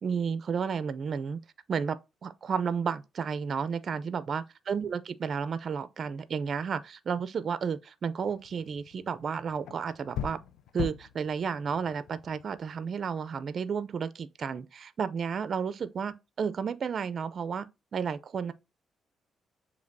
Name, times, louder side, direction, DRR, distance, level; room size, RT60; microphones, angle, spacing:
voice 1, 0.0-1.4 1.7-2.0 2.2-10.4 10.7-18.5, right 6 dB, 55° right, 0.4 m, -32 dB
sound 1, 8.2-13.1, left 9 dB, 80° left, 0.3 m, -41 dB
6.9 x 2.8 x 2.6 m
cardioid pair, 80°, 0 cm